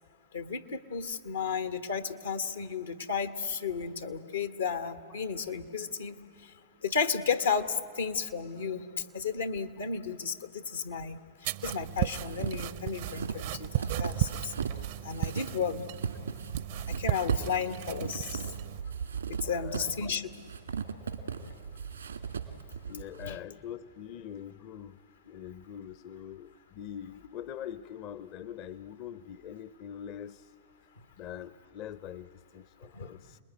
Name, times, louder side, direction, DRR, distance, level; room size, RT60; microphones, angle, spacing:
voice 1, 0.3-6.2 6.8-8.9 9.1-11.2 11.6-14.5 15.0-15.8 16.9-18.5 19.3-20.3 21.3-21.4 23.2-23.4 32.9-33.1, left 6 dB, 85° left, 10 dB, 1.3 m, -33 dB
sound 1, 11.4-18.8, right 15 dB, 60° right, 0.6 m, -35 dB
sound 2, 11.8-14.8 15.1-23.3, right 6 dB, 90° right, 1.8 m, -37 dB
voice 2, 19.4-20.2 22.9-25.0 25.2-30.5 31.2-33.4, left 10 dB, 50° left, 16 dB, 0.6 m, -43 dB
28.5 x 20.5 x 9.5 m, 2.5 s
hypercardioid pair, 105°, 0 cm